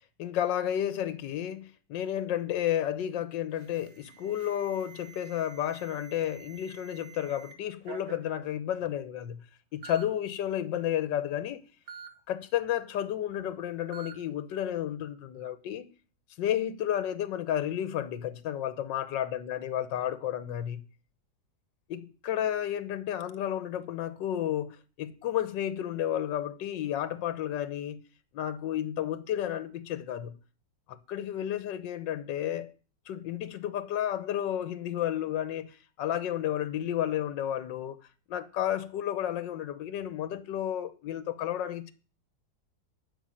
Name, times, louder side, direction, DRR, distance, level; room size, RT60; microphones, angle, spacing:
voice 1, 0.2-9.5 9.7-11.6 12.3-15.9 16.4-20.8 21.9-28.0 28.3-30.4 30.9-32.7 33.1-38.0 38.3-41.9, left 11 dB, 80° left, 1.5 m, -32 dB
Alarm, 3.5-7.5 7.8-8.3 9.1-9.2 9.8-10.0 11.9-12.1 13.9-14.1, right 6 dB, 45° right, 1.3 m, -48 dB
11.5 x 5.6 x 8.9 m
omnidirectional pair, 1.9 m